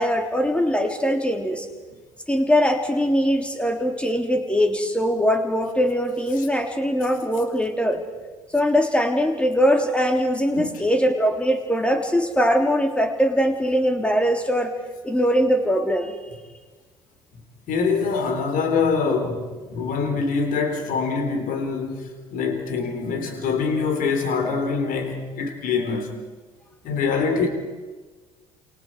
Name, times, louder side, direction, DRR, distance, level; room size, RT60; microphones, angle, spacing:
voice 1, 0.0-1.7 2.3-8.0 8.5-14.7 15.0-16.1, equal, 5° left, 5 dB, 3.2 m, -21 dB
voice 2, 17.7-19.4 19.7-26.1 26.8-27.5, left 5 dB, 50° left, 6 dB, 3.9 m, -24 dB
30.0 x 28.0 x 4.8 m, 1.3 s
figure-of-eight pair, 55°, 18 cm